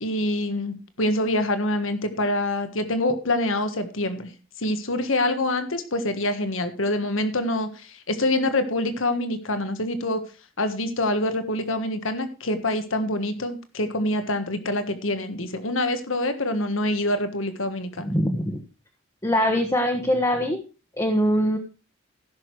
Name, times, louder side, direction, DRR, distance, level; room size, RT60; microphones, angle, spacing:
voice 1, 0.0-4.3 4.6-10.2 10.6-18.1, left 1 dB, 70° left, 9 dB, 1.6 m, -26 dB
voice 2, 18.0-18.6 19.2-20.6 21.0-21.6, equal, 15° left, 2 dB, 1.2 m, -22 dB
15.5 x 6.6 x 4.7 m, 0.33 s
head